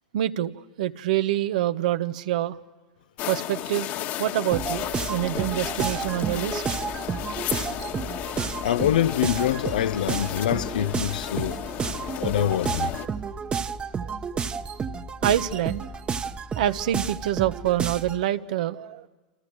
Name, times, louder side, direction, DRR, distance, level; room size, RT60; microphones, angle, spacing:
voice 1, 0.1-0.5 0.8-2.6 3.3-3.9 4.2-6.6 14.0-14.2 15.2-15.8 16.6-19.1, right 12 dB, 70° right, 1.2 m, -26 dB
sound 1, 3.2-13.1, left 12 dB, 50° left, 1.7 m, -34 dB
sound 2, 4.5-18.2, right 6 dB, 25° right, 1.2 m, -31 dB
voice 2, 8.6-11.6 12.2-12.9, left 11 dB, 80° left, 0.8 m, -25 dB
29.0 x 27.5 x 6.4 m
hypercardioid pair, 110°, 4 cm